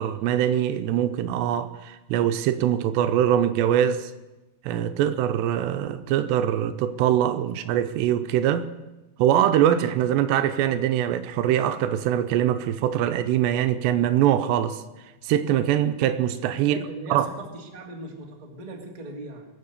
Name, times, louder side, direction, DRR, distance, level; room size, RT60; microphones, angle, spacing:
voice 1, 0.0-4.1 4.6-8.7 9.2-14.8 15.2-16.8 17.1-17.3, right 11 dB, 85° right, 2.9 m, -23 dB
voice 2, 16.7-19.5, right 2 dB, 20° right, 1.1 m, -39 dB
23.0 x 7.8 x 6.7 m
omnidirectional pair, 4.9 m